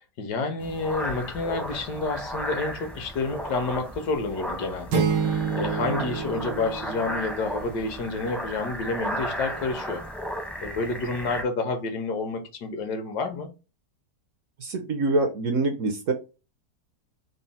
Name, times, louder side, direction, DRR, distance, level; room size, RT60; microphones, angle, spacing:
voice 1, 0.2-10.0 10.6-13.5, left 3 dB, 75° left, 1.4 m, -29 dB
sound 1, 0.6-11.4, equal, ahead, 0.4 m, -35 dB
sound 2, 4.9-7.7, right 6 dB, 85° right, 1.5 m, -28 dB
voice 2, 14.6-16.1, right 2 dB, 65° right, 0.8 m, -25 dB
4.0 x 2.0 x 4.0 m
omnidirectional pair, 1.8 m